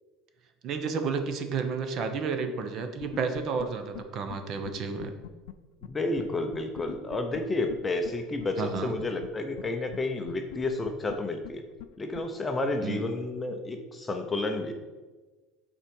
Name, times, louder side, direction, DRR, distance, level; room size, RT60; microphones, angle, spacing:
voice 1, 0.6-5.1 8.6-8.9 12.8-13.0, right 5 dB, 40° right, 7 dB, 0.8 m, -31 dB
sound 1, 3.0-3.6 3.9-4.0 4.3-4.4 4.6-4.7 5.0-5.5 5.8-5.9 6.2-6.3 6.5-7.4 7.7-7.8 8.0-8.1 8.4-8.5 8.7-9.3 9.6-9.7 9.9-10.0 10.3-11.1 11.4-11.5 11.8-11.9 12.1-12.2, left 17 dB, 85° left, 0.4 m, -41 dB
voice 2, 5.8-11.6 12.0-14.7, left 2 dB, 15° left, 4 dB, 0.6 m, -31 dB
7.3 x 4.5 x 5.3 m, 1.3 s
cardioid pair, 155°, 0 cm